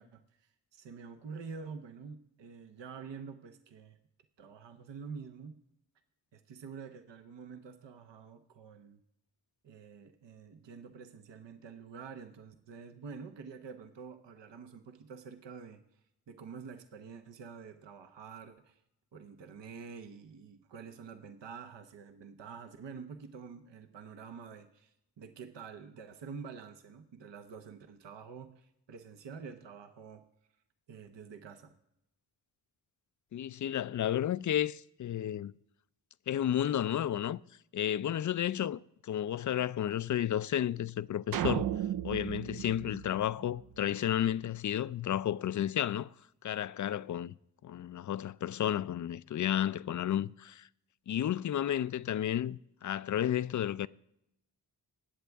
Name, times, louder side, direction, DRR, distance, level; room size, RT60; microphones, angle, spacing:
voice 1, 0.0-4.0 4.4-5.6 6.3-9.0 9.6-15.8 16.3-18.8 19.1-30.2 30.9-31.7, right 5 dB, 75° right, 1.0 m, -47 dB
voice 2, 33.3-35.5 36.3-37.4 37.7-41.7 42.0-46.1 46.4-47.3 47.6-50.7 51.1-53.9, left 10 dB, 45° left, 0.4 m, -32 dB
sound 1, 41.3-43.8, right 10 dB, 55° right, 0.5 m, -34 dB
19.0 x 8.0 x 3.5 m
supercardioid pair, 40°, 43 cm